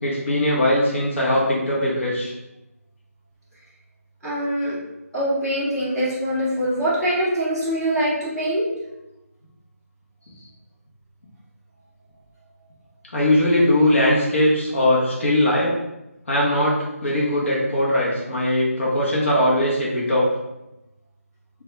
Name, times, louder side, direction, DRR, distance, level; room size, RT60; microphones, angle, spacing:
voice 1, 0.0-2.3 13.1-15.7 16.3-20.2, left 1 dB, 50° left, -4 dB, 0.8 m, -20 dB
voice 2, 4.2-4.7 5.1-8.7, equal, 5° left, -17 dB, 0.4 m, -23 dB
2.7 x 2.2 x 3.1 m, 0.95 s
figure-of-eight pair, 170°, 8 cm